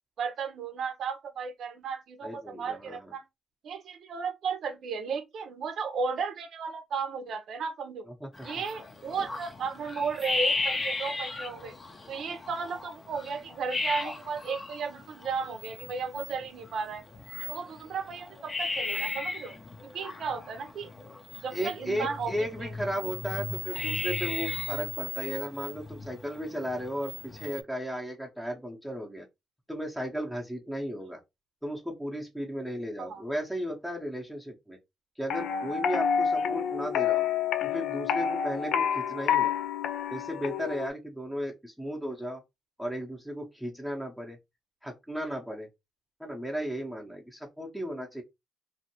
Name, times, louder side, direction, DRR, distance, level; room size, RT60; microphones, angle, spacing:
voice 1, 0.2-3.2 3.6-8.1 8.4-11.7 12.1-17.0 17.5-19.5 19.9-20.9 21.4-22.3 22.6-22.7 33.0-33.2, right 5 dB, 65° right, 0.6 m, -34 dB
voice 2, 2.2-3.1 8.2-8.5 21.5-29.3 29.7-31.2 31.6-34.8 35.2-37.3 37.6-39.5 40.1-42.4 42.8-44.4 44.8-45.7 46.2-48.2, equal, ahead, 0.8 m, -35 dB
sound 1, 8.3-27.6, left 3 dB, 30° left, 0.6 m, -36 dB
sound 2, 35.3-40.9, left 8 dB, 80° left, 0.4 m, -28 dB
2.6 x 2.5 x 2.8 m
cardioid pair, 90°, 0 cm